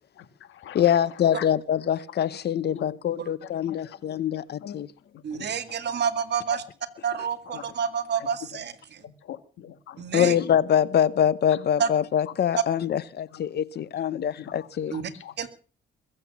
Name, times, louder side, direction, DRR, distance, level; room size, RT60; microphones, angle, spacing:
voice 1, 0.2-1.5 2.7-2.9 3.4-4.0 4.6-4.8 5.1-5.5 5.8-6.0 7.1-7.2 7.5-7.8 8.2-8.6 9.0-10.6 11.5-11.6 12.3-12.4 13.3-13.4 14.1-15.5, left 10 dB, 75° left, 1.9 m, -42 dB
voice 2, 0.7-4.9 10.1-15.0, left 9 dB, 55° left, 0.8 m, -24 dB
voice 3, 5.2-6.6 7.0-8.7 10.0-10.4 11.8-11.9 14.9-15.1 15.4-15.5, right 7 dB, 55° right, 2.2 m, -28 dB
22.0 x 7.7 x 7.2 m
cardioid pair, 90°, 20 cm